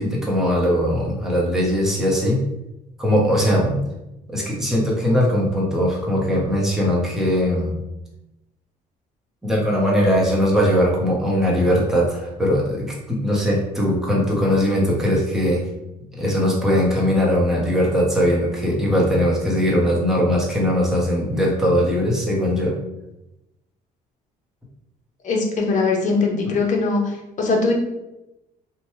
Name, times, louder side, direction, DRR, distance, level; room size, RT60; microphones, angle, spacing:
voice 1, 0.0-2.4 3.0-3.8 4.3-7.7 9.4-15.6 16.1-22.7, equal, 5° right, -4 dB, 0.9 m, -20 dB
voice 2, 25.2-27.7, left 3 dB, 45° left, 1 dB, 0.8 m, -21 dB
2.9 x 2.2 x 3.1 m, 0.92 s
cardioid pair, 110°, 17 cm